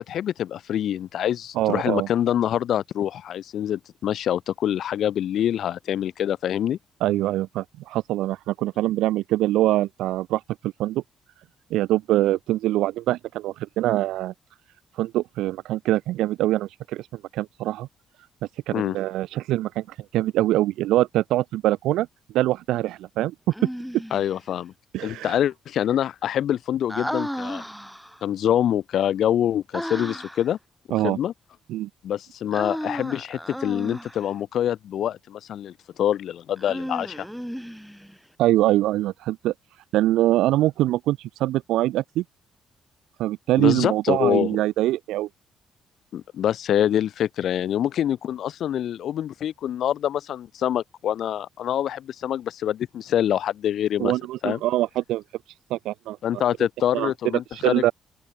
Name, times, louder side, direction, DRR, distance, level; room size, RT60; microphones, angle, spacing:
voice 1, 0.0-6.8 18.7-19.0 24.1-24.7 25.0-27.6 28.2-30.6 31.0-31.3 32.0-37.3 43.6-44.6 46.1-54.1 54.4-54.6 56.2-57.9, left 10 dB, 70° left, 4.0 m, -25 dB
voice 2, 1.6-2.1 7.0-11.0 11.7-14.3 15.0-17.1 17.3-17.9 18.7-19.8 20.1-22.1 22.3-23.3 24.9-25.4 30.9-31.2 31.7-31.9 38.4-39.5 39.9-42.2 43.2-45.3 54.0-55.2 55.7-56.4 56.9-57.1 57.5-57.9, right 15 dB, 90° right, 5.7 m, -23 dB
Human voice, 23.5-24.4 26.9-28.2 29.7-30.5 32.5-34.3 36.6-38.2, equal, ahead, 4.9 m, -34 dB
open air
cardioid pair, 90°, 0 cm